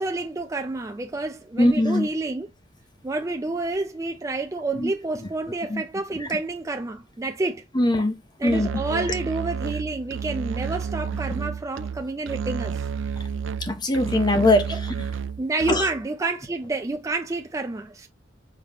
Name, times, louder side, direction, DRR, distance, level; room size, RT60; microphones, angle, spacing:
voice 1, 0.0-2.5 3.0-7.7 8.4-12.9 15.4-18.1, right 2 dB, 15° right, 0.4 m, -29 dB
voice 2, 1.6-2.1 4.7-4.9 5.2-5.3 5.7-5.8 6.2-6.3 7.7-8.7 11.3-11.4 13.6-14.8 15.7-15.9 16.2-16.3, left 1 dB, 25° left, 0.9 m, -22 dB
Musical instrument, 8.5-16.1, right 7 dB, 85° right, 0.4 m, -31 dB
5.2 x 2.9 x 2.9 m
head